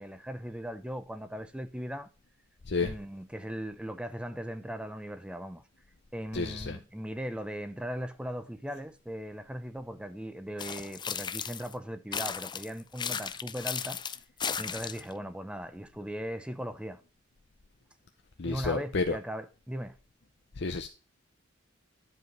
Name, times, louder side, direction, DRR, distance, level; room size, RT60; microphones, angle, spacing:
voice 1, 0.0-2.1 2.8-5.6 6.1-14.0 14.6-17.0 18.4-20.0, equal, 5° right, 0.8 m, -38 dB
voice 2, 6.3-6.8 18.4-19.2 20.6-20.9, left 4 dB, 65° left, 0.7 m, -30 dB
sound 1, 10.6-11.7 12.1-15.1, left 7 dB, 25° left, 0.5 m, -35 dB
11.0 x 5.0 x 5.3 m
head